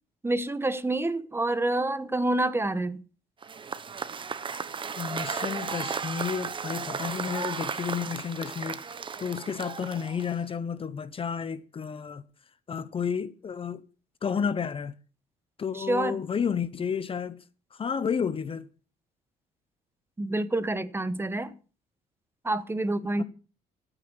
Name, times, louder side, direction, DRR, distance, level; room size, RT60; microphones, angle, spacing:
voice 1, 0.2-3.0 15.7-16.2 20.2-21.5 22.4-23.2, right 2 dB, 15° right, 1.2 m, -27 dB
Cheering / Applause / Crowd, 3.4-10.5, right 6 dB, 30° right, 1.1 m, -35 dB
voice 2, 5.0-8.8 9.2-12.2 12.7-13.8 14.2-14.9 15.6-17.4 17.8-18.6 23.2-23.3, left 7 dB, 35° left, 0.9 m, -31 dB
14.0 x 9.1 x 7.8 m
cardioid pair, 110°, 17 cm